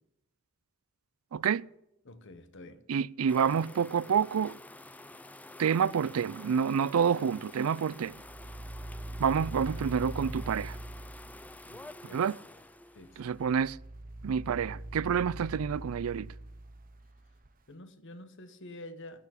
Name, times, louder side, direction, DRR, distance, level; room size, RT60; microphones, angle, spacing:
voice 1, 1.3-1.7 2.9-4.6 5.6-8.2 9.2-10.8 12.1-12.4 13.2-13.8 14.2-16.3, right 7 dB, 80° right, 0.4 m, -28 dB
voice 2, 2.0-2.8 11.6-12.2 12.9-13.4 17.7-19.3, left 1 dB, 60° left, 1.2 m, -48 dB
sound 1, 3.3-13.7, left 2 dB, 5° left, 0.4 m, -50 dB
sound 2, 8.1-11.8 13.1-17.5, right 1 dB, 40° right, 0.9 m, -42 dB
12.5 x 6.9 x 9.9 m
head